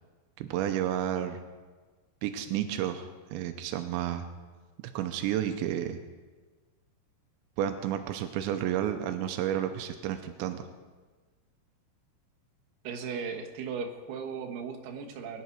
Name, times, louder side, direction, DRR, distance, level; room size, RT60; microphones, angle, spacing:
voice 1, 0.4-1.4 2.2-4.3 4.9-6.0 7.6-10.7, right 10 dB, 90° right, 7 dB, 3.0 m, -31 dB
voice 2, 12.8-15.4, right 5 dB, 70° right, 1 dB, 3.2 m, -37 dB
21.5 x 10.5 x 4.6 m, 1.4 s
omnidirectional pair, 5.3 m